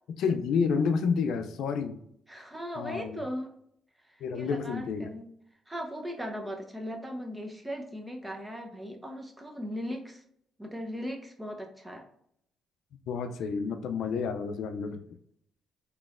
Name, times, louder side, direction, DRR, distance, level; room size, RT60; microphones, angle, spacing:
voice 1, 0.2-2.0 2.8-3.2 4.2-5.1 13.1-15.0, left 5 dB, 80° left, 8 dB, 0.4 m, -29 dB
voice 2, 2.3-3.5 4.1-5.2 5.7-10.2 10.6-12.0, equal, 10° right, 3 dB, 0.7 m, -38 dB
3.8 x 3.0 x 2.4 m, 0.70 s
cardioid pair, 90°, 0 cm